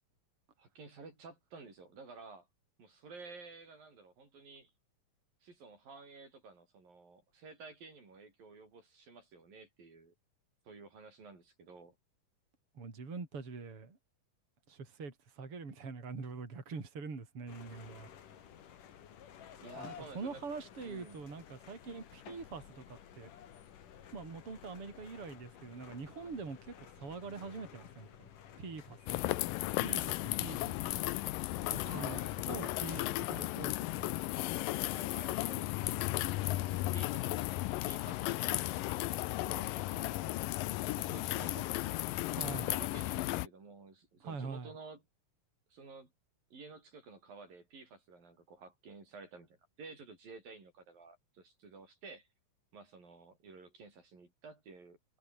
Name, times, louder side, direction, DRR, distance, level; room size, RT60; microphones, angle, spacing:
voice 1, 0.6-2.5 2.8-4.7 5.4-10.1 10.7-11.9 19.6-20.4 20.8-21.2 31.9-32.5 34.8-36.1 36.4-37.5 37.9-40.4 40.9-41.7 42.5-45.0 45.7-46.1 46.5-52.3 52.7-55.0, right 4 dB, 85° right, 9.2 m, -52 dB
voice 2, 12.7-14.0 14.7-18.1 19.8-23.3 24.1-28.3 28.6-29.5 29.8-31.0 31.7-34.1 42.3-42.7 44.2-44.7, right 4 dB, 40° right, 5.4 m, -44 dB
sound 1, 17.5-30.9, left 9 dB, 70° left, 3.7 m, -54 dB
sound 2, 29.1-43.5, left 17 dB, 85° left, 2.5 m, -35 dB
omnidirectional pair, 3.9 m